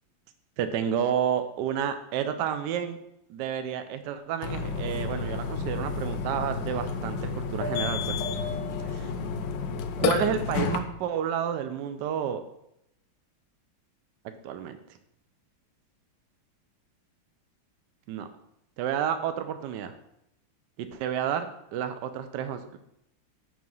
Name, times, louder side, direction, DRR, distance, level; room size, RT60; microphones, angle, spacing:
voice 1, 0.6-3.0 3.3-8.2 8.8-9.1 10.0-12.4 14.4-14.8 18.1-18.3 18.8-19.9 20.8-22.8, right 9 dB, 75° right, 8 dB, 1.0 m, -30 dB
Burping eructation, 4.4-10.8, left 5 dB, 70° left, 1.2 m, -30 dB
5.8 x 4.8 x 5.3 m, 0.80 s
omnidirectional pair, 2.3 m